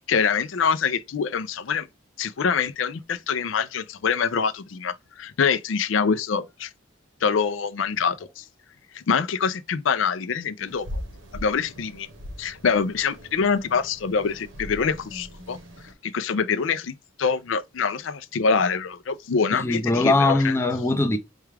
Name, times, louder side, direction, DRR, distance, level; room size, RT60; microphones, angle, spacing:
voice 1, 0.1-1.9 2.2-6.7 7.2-8.4 8.9-11.0 11.3-12.1 12.4-15.6 16.0-20.5, left 6 dB, 75° left, 0.5 m, -25 dB
sound 1, 10.7-15.9, equal, 75° right, 0.9 m, -40 dB
voice 2, 19.5-21.2, left 2 dB, 15° left, 0.5 m, -21 dB
4.4 x 2.3 x 3.3 m
head